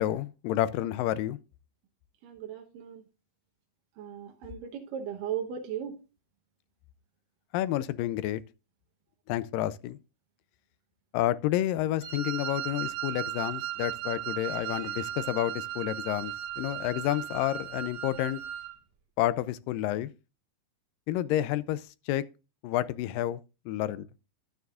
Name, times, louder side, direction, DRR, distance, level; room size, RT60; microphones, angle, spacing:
voice 1, 0.0-1.4 7.5-8.4 9.3-10.0 11.1-18.4 19.2-20.1 21.1-22.2 22.6-23.4 23.7-24.1, left 13 dB, 85° left, 2.3 m, -30 dB
voice 2, 2.2-3.0 4.0-6.0, right 9 dB, 75° right, 2.7 m, -37 dB
Wind instrument woodwind instrument, 12.0-18.7, right 12 dB, 60° right, 2.0 m, -36 dB
12.5 x 9.4 x 2.4 m
omnidirectional pair, 3.9 m